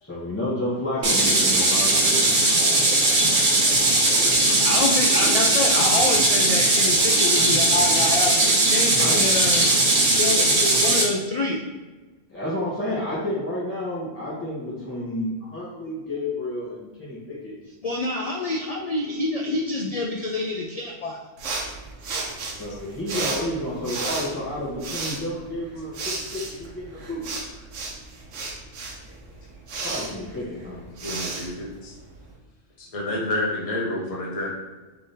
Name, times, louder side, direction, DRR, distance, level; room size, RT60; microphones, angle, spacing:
voice 1, 0.0-2.3 9.0-9.2 12.3-17.6 22.6-27.3 29.8-30.8, left 1 dB, 10° left, -10 dB, 1.0 m, -30 dB
sound 1, 1.0-11.0, right 2 dB, 50° right, 1.1 m, -19 dB
voice 2, 4.6-8.4 8.7-9.7 10.2-11.6 17.8-21.2, left 2 dB, 80° left, -1 dB, 0.3 m, -27 dB
sound 2, 21.4-32.3, right 3 dB, 80° right, 1.1 m, -33 dB
voice 3, 31.0-32.0 32.8-34.5, left 1 dB, 30° left, -3 dB, 0.9 m, -29 dB
3.7 x 3.3 x 4.0 m, 1.2 s
omnidirectional pair, 1.3 m